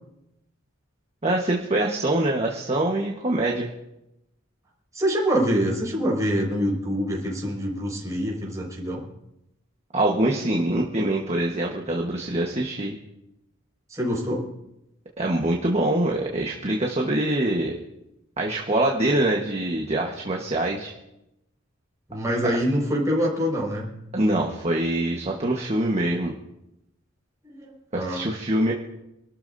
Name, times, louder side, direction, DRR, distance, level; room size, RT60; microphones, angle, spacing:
voice 1, 1.2-3.7 9.9-13.0 15.2-17.7 18.4-20.9 24.1-26.3 27.9-28.7, right 1 dB, 35° right, -1 dB, 1.3 m, -24 dB
voice 2, 4.9-9.0 13.9-14.5 22.1-23.9 27.4-28.2, equal, 15° right, -3 dB, 5.3 m, -25 dB
26.5 x 13.0 x 2.7 m, 0.89 s
head